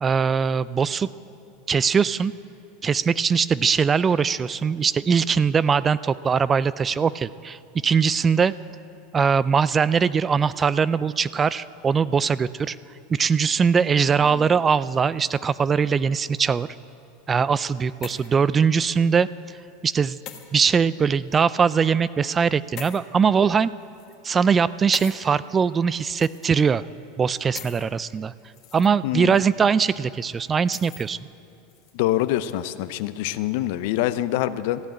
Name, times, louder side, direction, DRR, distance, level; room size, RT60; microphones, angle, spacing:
voice 1, 0.0-1.1 1.7-2.3 2.8-8.5 9.1-12.8 13.1-16.7 17.3-19.3 19.8-20.2 20.5-23.7 24.2-26.8 27.2-28.3 28.7-31.2, right 6 dB, 25° right, 18 dB, 0.4 m, -21 dB
sound 1, 14.0-14.6 15.5-16.2 17.5-18.4 18.9-19.1 20.3-20.5 21.3-21.4 22.8-23.0 23.8-24.2 24.9-25.2 26.2-26.7 27.5-27.8 28.4-28.9 29.3-29.4 30.7-31.1 31.7-31.9, left 9 dB, 50° left, 1.4 m, -41 dB
voice 2, 29.0-29.4 31.9-34.8, left 14 dB, 65° left, 13 dB, 0.6 m, -25 dB
14.5 x 8.6 x 8.9 m, 2.5 s
hypercardioid pair, 95°, 0 cm